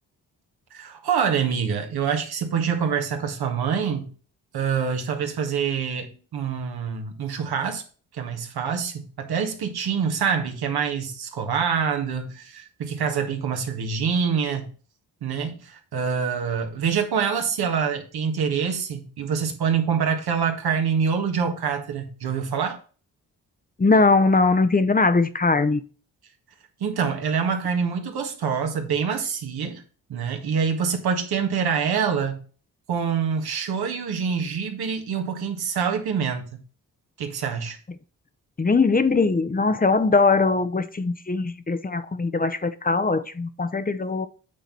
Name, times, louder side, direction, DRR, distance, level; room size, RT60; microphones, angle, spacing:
voice 1, 0.7-4.1 4.5-7.8 8.1-14.7 15.2-22.8 26.8-29.8 30.1-32.4 32.9-36.6 37.2-37.8, right 6 dB, 70° right, 1.8 m, -26 dB
voice 2, 23.8-25.8 38.6-44.3, left 3 dB, 20° left, 0.9 m, -21 dB
8.5 x 3.8 x 5.9 m
supercardioid pair, 45°, 39 cm